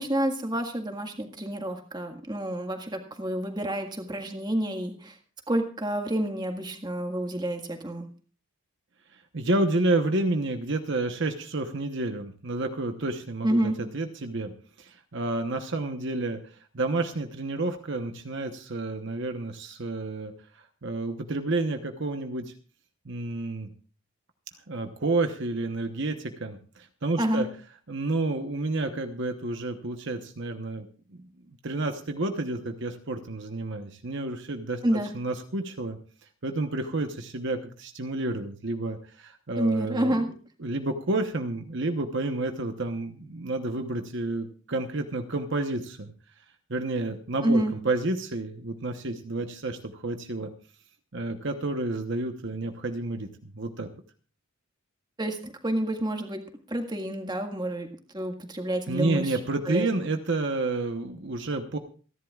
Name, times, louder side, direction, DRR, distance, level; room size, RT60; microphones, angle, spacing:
voice 1, 0.0-5.1 5.5-8.0 13.4-13.8 27.2-27.5 34.8-35.1 39.6-40.3 47.4-47.7 55.2-56.4 56.7-57.9 58.1-59.3 59.7-59.9, right 1 dB, 20° right, 4 dB, 1.8 m, -28 dB
voice 2, 9.3-14.5 14.8-16.4 16.7-20.3 20.8-22.5 23.1-23.7 24.7-26.6 27.0-27.5 27.9-30.9 31.6-36.0 36.4-40.2 40.6-46.1 46.7-50.5 51.1-53.9 58.9-61.8, right 2 dB, 55° right, 5 dB, 1.0 m, -30 dB
27.5 x 11.0 x 2.4 m, 0.40 s
head